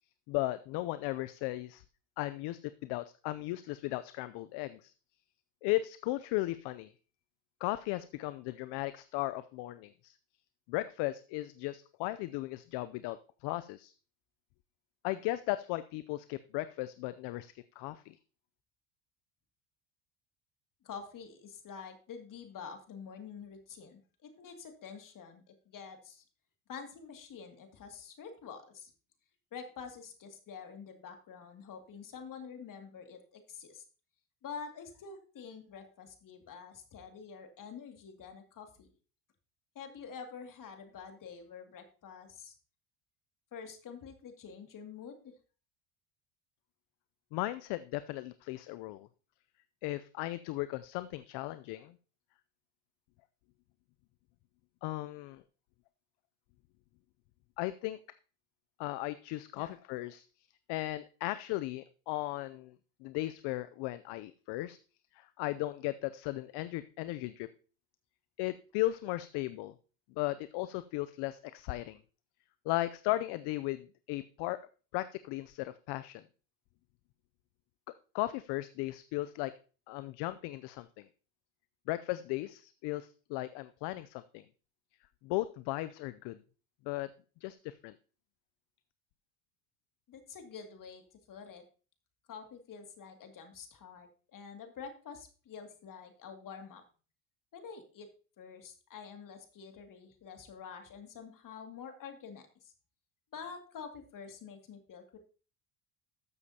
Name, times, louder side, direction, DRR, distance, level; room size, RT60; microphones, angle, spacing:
voice 1, 0.3-1.8 2.2-4.9 5.6-6.9 7.6-10.2 10.7-13.9 15.0-18.2 47.3-49.1 49.8-51.9 54.8-55.4 57.6-58.0 58.8-60.3 60.7-62.8 63.0-64.8 65.1-67.5 68.4-69.7 70.2-72.0 72.6-74.6 74.9-76.2 78.1-79.5 79.9-81.1 81.9-84.4 85.2-86.4 86.9-87.1 87.4-88.0, left 17 dB, 60° left, 14 dB, 0.6 m, -36 dB
voice 2, 20.8-26.2 26.7-28.9 29.5-33.8 34.4-38.9 39.7-42.6 43.5-45.3 59.5-59.7 90.1-91.0 91.3-91.6 92.3-96.8 97.5-98.1 98.4-102.7 103.3-105.2, left 6 dB, 45° left, 5 dB, 2.4 m, -47 dB
13.0 x 7.1 x 2.8 m, 0.37 s
supercardioid pair, 95°, 47 cm